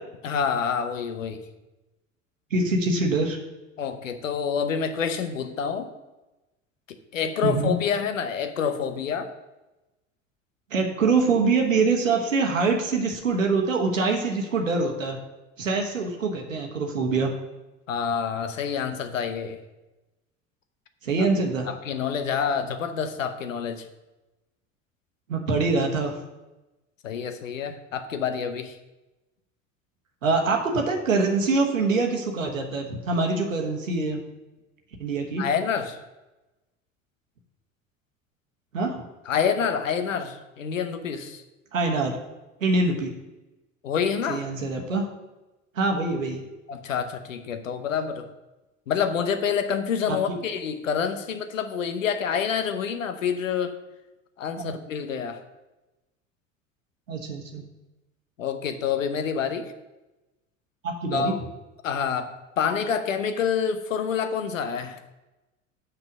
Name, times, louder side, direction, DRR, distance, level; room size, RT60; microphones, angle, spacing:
voice 1, 0.2-1.4 3.8-5.9 7.1-9.3 17.9-19.6 21.7-23.9 27.0-28.8 35.4-36.0 39.3-41.4 43.8-44.5 46.7-48.2 48.9-53.7 54.4-55.4 58.4-59.7 61.1-61.4 61.8-65.0, left 7 dB, 75° left, 9 dB, 0.8 m, -27 dB
voice 2, 2.5-3.4 7.4-7.7 10.7-15.2 15.6-17.3 21.0-21.7 25.3-26.1 30.2-34.2 35.0-35.4 38.7-39.0 41.7-42.2 42.6-43.1 44.3-45.0 45.8-46.4 50.3-50.4 54.6-54.7 57.1-57.6 60.8-61.3, right 3 dB, 80° right, 1 dB, 1.1 m, -24 dB
6.0 x 5.4 x 6.2 m, 1.0 s
figure-of-eight pair, 70°, 39 cm